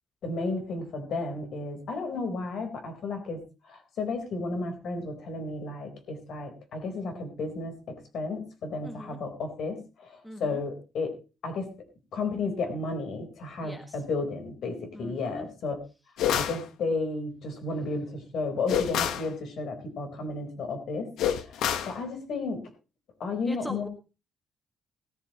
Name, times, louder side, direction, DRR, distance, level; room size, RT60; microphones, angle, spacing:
voice 1, 0.2-11.2 11.4-11.7 12.1-15.8 16.3-22.6 23.2-23.9, left 3 dB, 60° left, 6 dB, 4.0 m, -33 dB
voice 2, 8.8-9.2 10.2-10.6 13.6-14.0 14.9-15.5 23.4-23.9, left 1 dB, 5° left, 6 dB, 1.5 m, -40 dB
sound 1, 16.2-16.6 18.7-19.3 21.2-22.0, left 9 dB, 85° left, 1.2 m, -27 dB
18.0 x 13.5 x 3.0 m, 0.31 s
cardioid pair, 165°, 0 cm